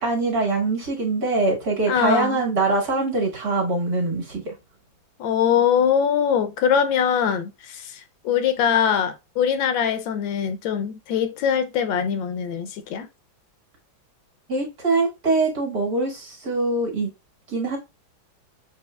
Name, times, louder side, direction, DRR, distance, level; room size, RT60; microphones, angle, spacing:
voice 1, 0.0-4.5 14.5-17.1 17.5-17.8, right 3 dB, 50° right, 2.1 m, -23 dB
voice 2, 1.9-2.4 5.2-13.1, left 8 dB, 75° left, 1.3 m, -22 dB
6.9 x 3.0 x 2.2 m
omnidirectional pair, 2.1 m